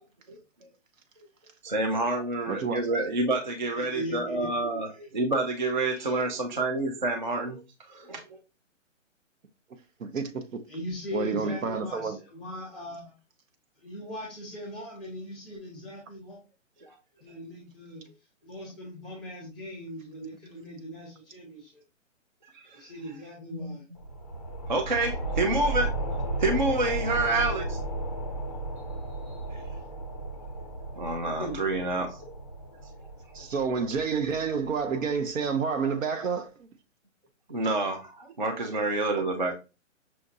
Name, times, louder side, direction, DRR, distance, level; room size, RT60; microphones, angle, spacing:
voice 1, 1.6-7.6 7.9-8.4 16.8-17.0 22.5-22.9 23.5-23.8 24.7-25.9 26.4-27.8 29.5-29.6 31.0-32.3 37.5-39.5, right 2 dB, 40° right, 0.4 m, -28 dB
voice 2, 2.5-2.8 10.0-10.7 11.1-12.2 33.3-36.7, right 5 dB, 75° right, 0.8 m, -29 dB
voice 3, 3.7-4.5 5.8-6.2 10.7-13.1 13.8-16.4 17.2-18.0 18.4-21.8 22.7-23.8 31.4-31.6, left 1 dB, ahead, 0.7 m, -39 dB
sound 1, 23.9-35.2, right 2 dB, 30° left, 0.4 m, -34 dB
5.8 x 2.5 x 2.5 m
hypercardioid pair, 165°, 39 cm